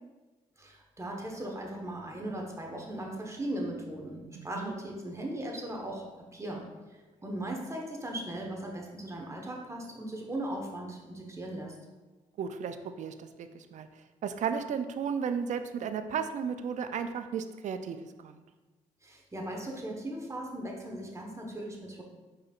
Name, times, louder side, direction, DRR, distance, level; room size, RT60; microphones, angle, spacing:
voice 1, 0.6-6.6 7.2-11.8 19.0-22.0, right 1 dB, 20° right, 0 dB, 1.1 m, -38 dB
voice 2, 4.3-4.7 12.4-18.4, right 7 dB, 65° right, 9 dB, 0.4 m, -34 dB
4.8 x 4.5 x 2.4 m, 1.2 s
supercardioid pair, 60°, 14 cm